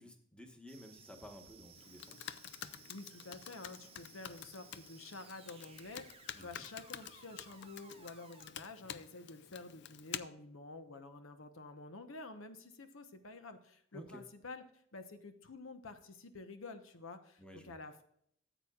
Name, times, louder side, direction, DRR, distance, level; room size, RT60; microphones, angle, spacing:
voice 1, 0.0-2.2 6.3-6.6 13.9-14.2 17.4-17.8, equal, 5° left, 4 dB, 1.2 m, -53 dB
sound 1, 0.7-8.5, right 7 dB, 30° right, 0.7 m, -60 dB
Computer keyboard, 1.8-10.2, left 10 dB, 60° left, 0.5 m, -49 dB
voice 2, 2.9-14.6 14.9-18.0, left 3 dB, 80° left, 8 dB, 1.0 m, -50 dB
14.0 x 8.2 x 2.4 m, 0.68 s
head